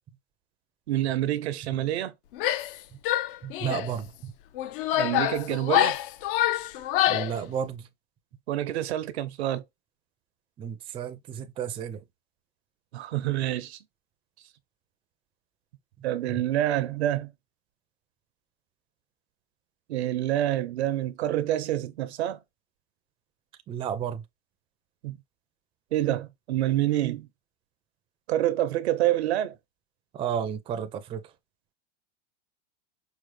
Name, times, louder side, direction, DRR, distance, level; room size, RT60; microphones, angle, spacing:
voice 1, 0.9-2.1 4.9-6.0 8.5-9.6 12.9-13.8 16.0-17.3 19.9-22.4 25.0-25.2 25.9-27.3 28.3-29.5, right 13 dB, 90° right, 0.8 m, -27 dB
Female speech woman speaking / Yell, 2.3-2.8 3.1-3.9 4.6-7.4, left 13 dB, 55° left, 0.5 m, -26 dB
voice 2, 3.4-4.3 7.1-7.9 10.6-12.0 16.3-16.4 23.7-24.2 30.1-31.2, right 8 dB, 15° right, 0.4 m, -32 dB
4.8 x 2.0 x 3.2 m
supercardioid pair, 140°, 32 cm